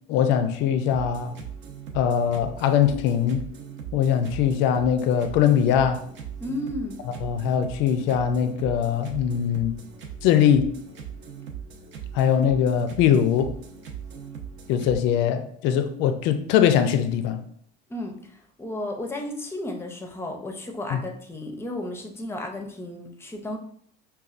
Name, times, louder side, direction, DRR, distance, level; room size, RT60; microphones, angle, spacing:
voice 1, 0.1-1.4 1.9-3.5 3.9-6.0 7.2-9.7 10.2-10.7 12.1-13.5 14.7-17.4 20.9-21.0, left 9 dB, 65° left, 0.4 m, -21 dB
sound 1, 0.8-15.0, right 7 dB, 60° right, 0.7 m, -39 dB
voice 2, 6.4-7.0 17.9-18.3 18.6-23.6, left 1 dB, 10° left, 0.5 m, -33 dB
5.3 x 2.3 x 2.4 m
cardioid pair, 125°, 21 cm